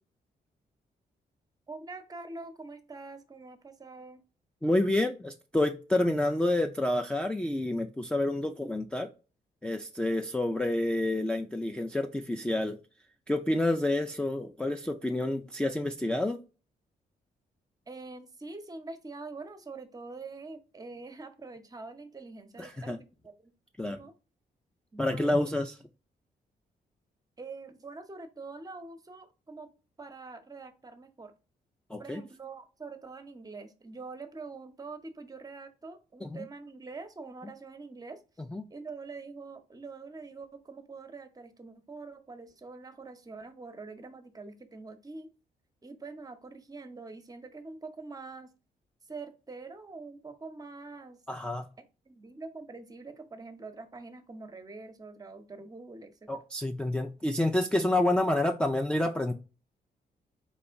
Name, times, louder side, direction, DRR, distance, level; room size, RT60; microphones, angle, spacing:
voice 1, 1.7-4.2 17.9-23.5 23.9-24.1 24.9-25.5 27.4-29.7 30.0-31.3 32.0-38.2 38.7-45.3 45.8-48.5 49.1-51.2 52.1-56.3, right 3 dB, 20° right, 0.7 m, -45 dB
voice 2, 4.6-9.1 9.6-12.8 13.3-16.4 22.6-23.0 23.8-24.0 25.0-25.8 31.9-32.2 36.2-36.3 38.5-38.7 51.3-51.7 56.3-59.3, left 1 dB, 5° left, 0.3 m, -28 dB
4.1 x 3.1 x 3.4 m
cardioid pair, 115°, 16 cm